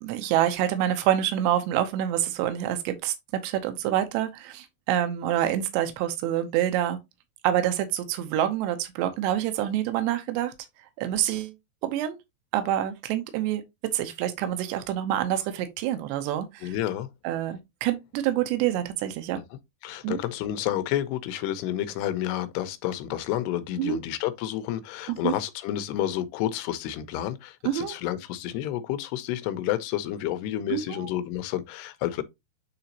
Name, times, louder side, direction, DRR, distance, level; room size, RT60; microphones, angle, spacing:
voice 1, 0.0-3.1 3.4-7.0 7.4-10.5 11.0-11.5 11.8-12.2 12.5-13.6 13.9-16.7 17.2-19.4 20.0-20.2 23.8-24.0 25.1-25.3 27.6-27.9 30.7-31.0, right 12 dB, 85° right, 3.0 m, -27 dB
voice 2, 16.6-17.1 19.8-32.2, left 12 dB, 85° left, 2.7 m, -30 dB
9.2 x 3.9 x 2.8 m
omnidirectional pair, 4.8 m